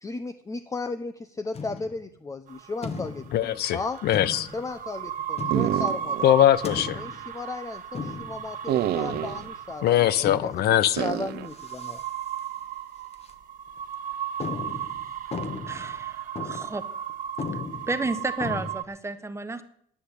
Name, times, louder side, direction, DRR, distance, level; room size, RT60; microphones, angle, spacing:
voice 1, 0.0-4.0 4.5-6.3 6.9-12.0, left 3 dB, 20° left, 0.7 m, -35 dB
sound 1, 1.5-2.1 2.8-3.5 4.1-4.7 5.4-5.9 6.6-7.3 7.9-8.5 9.1-9.5 10.2-11.1 11.5-12.1 12.4-12.5 13.1-13.3 13.8-13.9 14.4-16.0 16.4-16.8 17.1-17.2 17.4-18.7, left 5 dB, 40° left, 1.5 m, -36 dB
sound 2, 2.5-18.8, right 9 dB, 55° right, 1.4 m, -35 dB
voice 2, 3.3-4.5 6.2-7.0 9.8-11.0, left 12 dB, 70° left, 0.8 m, -21 dB
sound 3, 5.5-6.3 6.7-6.8 8.7-9.5 11.0-11.5, right 12 dB, 75° right, 0.9 m, -27 dB
voice 3, 15.7-16.8 17.9-19.6, right 3 dB, 15° right, 1.4 m, -32 dB
10.0 x 10.0 x 8.5 m
cardioid pair, 110°, 17 cm